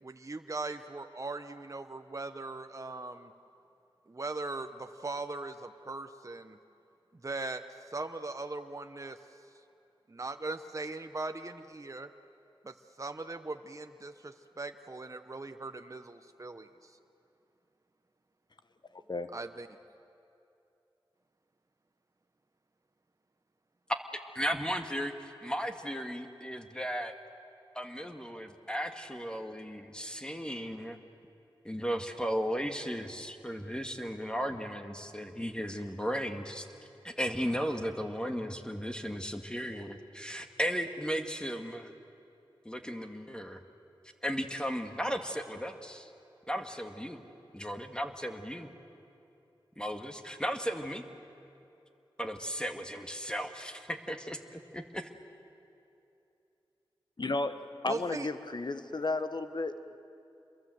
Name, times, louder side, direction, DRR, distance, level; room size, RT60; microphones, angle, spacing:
voice 1, 0.0-3.3 4.1-6.6 7.1-7.6 7.9-9.2 10.1-12.1 12.6-16.9 19.3-19.7 57.9-58.3, right 3 dB, 35° right, 7 dB, 1.0 m, -39 dB
voice 2, 24.3-27.1 27.8-31.0 31.6-36.7 37.0-41.9 42.7-43.6 44.2-46.1 46.5-47.2 47.5-48.7 49.8-51.0 52.2-55.1, equal, 10° left, 5 dB, 1.9 m, -35 dB
voice 3, 57.2-57.6 57.8-60.0, left 3 dB, 50° left, 10 dB, 1.3 m, -33 dB
28.0 x 22.0 x 7.9 m, 2.8 s
cardioid pair, 45°, 9 cm